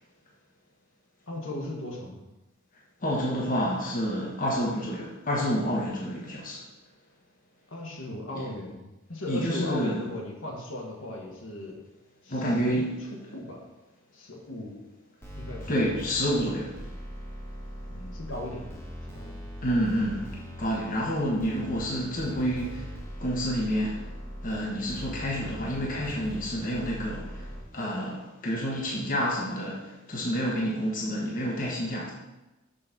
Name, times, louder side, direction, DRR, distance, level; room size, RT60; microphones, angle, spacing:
voice 1, 1.3-2.2 7.7-11.8 12.2-12.8 13.3-13.6 14.1-14.8 15.3-15.7 17.9-18.7 19.1-19.5, left 1 dB, 80° left, -1 dB, 1.6 m, -37 dB
voice 2, 3.0-6.6 8.3-8.4 9.3-10.0 12.3-12.9 15.7-16.8 19.6-22.9 23.2-24.1 24.4-32.1, equal, 45° left, -3 dB, 1.2 m, -29 dB
sound 1, 15.2-27.6, equal, 15° left, 1.2 m, -41 dB
6.4 x 4.1 x 6.0 m, 1.0 s
head